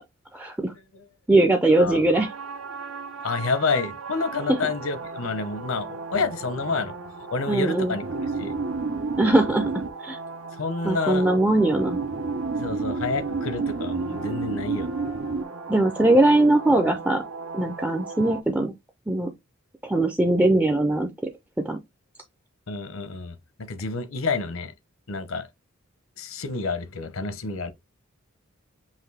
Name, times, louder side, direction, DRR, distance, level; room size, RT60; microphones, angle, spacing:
voice 1, 0.3-0.7 1.3-2.3 7.5-8.0 9.2-9.6 10.0-10.2 10.8-12.0 15.7-17.2 17.5-18.7 19.1-19.3 19.8-21.1 21.7-21.8, right 2 dB, 5° right, 0.4 m, -20 dB
sound 1, 2.1-18.4, right 4 dB, 80° right, 0.8 m, -32 dB
voice 2, 3.2-6.9 7.3-8.6 10.6-11.3 12.5-14.9 22.7-24.7 25.1-25.5 26.2-27.7, left 4 dB, 80° left, 0.8 m, -29 dB
5.7 x 2.6 x 3.3 m
head